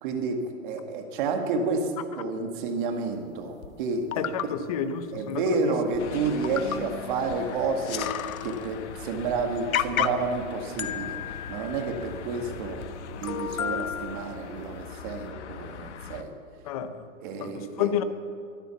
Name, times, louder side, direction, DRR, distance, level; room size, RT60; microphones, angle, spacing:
voice 1, 0.0-4.5 5.1-8.1 8.4-11.2 11.5-12.8 13.1-16.3 17.2-17.9, right 4 dB, 35° right, 1.9 m, -30 dB
sound 1, 3.6-3.7 4.1-4.5 5.5-5.6 5.9-6.1 6.4-6.9 7.3-7.4 7.7-8.7 9.2-9.3 9.7-10.4 10.8-12.3 12.8-12.9 13.2-14.6 15.2-15.3, left 10 dB, 90° left, 0.9 m, -32 dB
voice 2, 4.2-5.8 16.7-17.0 17.4-18.0, left 8 dB, 30° left, 0.7 m, -30 dB
sound 2, 6.0-16.2, left 7 dB, 55° left, 1.2 m, -41 dB
23.0 x 8.2 x 7.1 m
hypercardioid pair, 160°, 40 cm